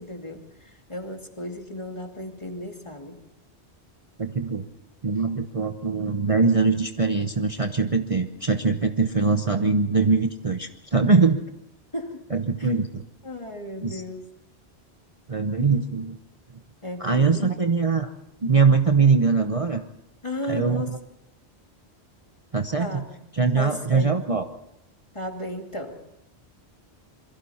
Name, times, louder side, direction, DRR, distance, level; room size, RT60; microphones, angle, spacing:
voice 1, 0.0-3.2 11.9-12.2 12.6-12.7 13.2-14.3 16.8-17.7 20.2-20.9 22.8-23.1 23.5-24.1 25.1-26.0, left 1 dB, 25° left, 3 dB, 2.4 m, -34 dB
voice 2, 4.2-4.7 5.0-11.4 12.3-13.0 13.8-14.0 15.3-16.2 17.0-18.1 18.4-19.8 20.5-20.8 22.5-23.0 23.4-24.4, right 4 dB, 35° right, 6 dB, 0.9 m, -22 dB
27.0 x 23.0 x 4.2 m, 0.81 s
omnidirectional pair, 1.1 m